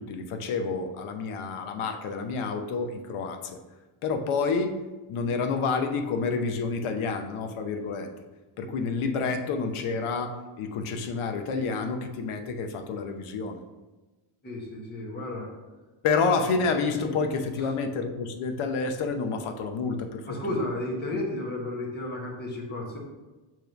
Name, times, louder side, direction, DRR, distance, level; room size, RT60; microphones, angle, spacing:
voice 1, 0.0-3.6 4.0-8.1 8.6-13.6 16.0-20.6 21.1-21.2, left 4 dB, 75° left, 7 dB, 0.8 m, -29 dB
voice 2, 14.4-15.5 17.6-17.7 20.3-23.0, left 1 dB, 20° left, -2 dB, 1.1 m, -33 dB
7.0 x 3.1 x 5.1 m, 1.2 s
cardioid pair, 180°, 50 cm